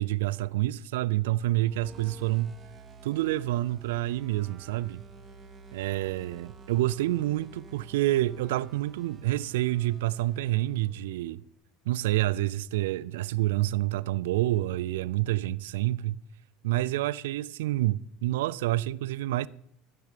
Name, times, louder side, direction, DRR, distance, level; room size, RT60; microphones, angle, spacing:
voice 1, 0.0-2.6 3.0-5.0 5.7-11.4 11.9-16.2 16.6-19.5, right 16 dB, 80° right, 0.4 m, -28 dB
sound 1, 1.6-11.1, right 4 dB, 30° right, 1.7 m, -50 dB
13.5 x 6.5 x 5.0 m
hypercardioid pair, 90°, 0 cm